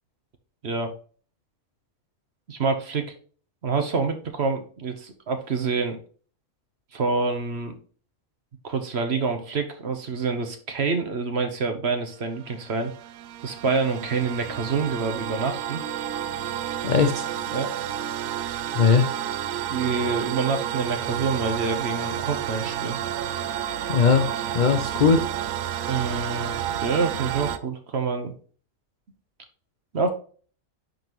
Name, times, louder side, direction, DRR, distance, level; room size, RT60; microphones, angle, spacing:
voice 1, 2.5-3.1 3.6-6.0 6.9-7.7 8.6-12.9 13.4-15.8 17.5-17.7 19.7-23.0 25.8-28.3 29.9-30.1, right 4 dB, 50° right, 6 dB, 1.1 m, -27 dB
sound 1, 12.3-27.6, right 10 dB, 75° right, 1.0 m, -30 dB
voice 2, 16.8-17.3 18.7-19.1 23.9-25.2, left 5 dB, 60° left, 8 dB, 0.5 m, -20 dB
10.5 x 3.9 x 3.0 m, 0.42 s
omnidirectional pair, 1.5 m